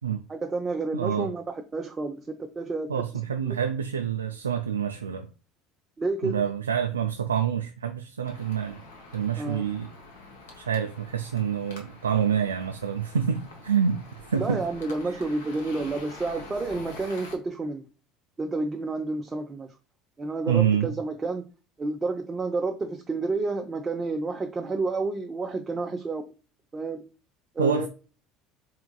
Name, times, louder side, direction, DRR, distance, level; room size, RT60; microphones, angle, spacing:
voice 1, 0.3-2.3 2.5-2.9 3.4-3.6 6.0-6.4 9.4-9.6 14.4-17.8 18.4-19.7 20.2-21.5 21.8-26.2 26.7-27.1 27.6-27.9, right 3 dB, 25° right, 0.6 m, -30 dB
voice 2, 0.9-1.3 2.9-5.3 6.2-8.8 9.1-9.9 10.6-14.6 20.5-21.0 27.6-27.9, right 7 dB, 80° right, 0.3 m, -27 dB
sound 1, 8.2-17.4, left 2 dB, 70° left, 1.2 m, -46 dB
4.6 x 3.8 x 2.2 m
figure-of-eight pair, 65°, 0 cm